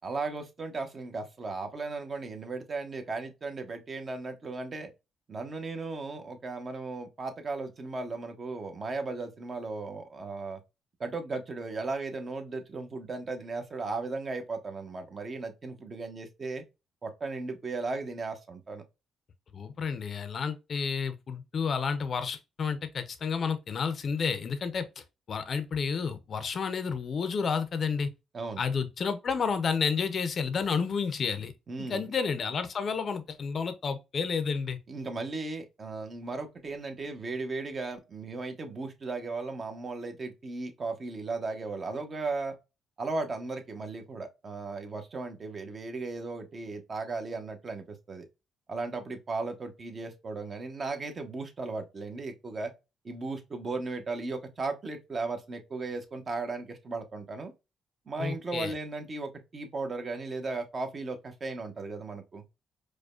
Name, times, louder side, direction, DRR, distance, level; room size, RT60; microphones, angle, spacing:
voice 1, 0.0-4.9 5.3-10.6 11.0-16.6 17.0-18.8 28.3-28.6 31.7-32.1 34.9-42.6 43.0-48.3 48.7-52.7 53.0-57.5 58.1-62.4, right 3 dB, 40° right, 0.9 m, -36 dB
voice 2, 19.5-28.1 28.6-31.5 31.8-34.8 58.2-58.7, left 5 dB, 50° left, 0.6 m, -31 dB
4.8 x 2.2 x 2.3 m
cardioid pair, 90°, 0 cm